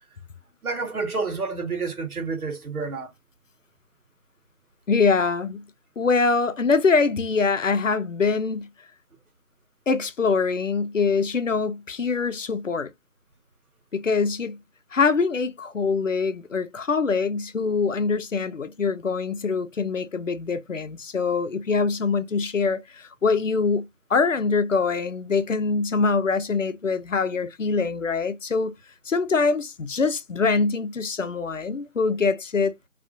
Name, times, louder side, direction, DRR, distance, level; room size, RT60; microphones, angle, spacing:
voice 1, 0.6-3.1, right 4 dB, 85° right, 1.0 m, -29 dB
voice 2, 4.9-5.6 6.0-8.7 9.9-12.9 13.9-14.6 14.9-28.7 29.1-32.7, left 4 dB, 60° left, 0.6 m, -24 dB
2.3 x 2.2 x 2.5 m
figure-of-eight pair, 155°, 43 cm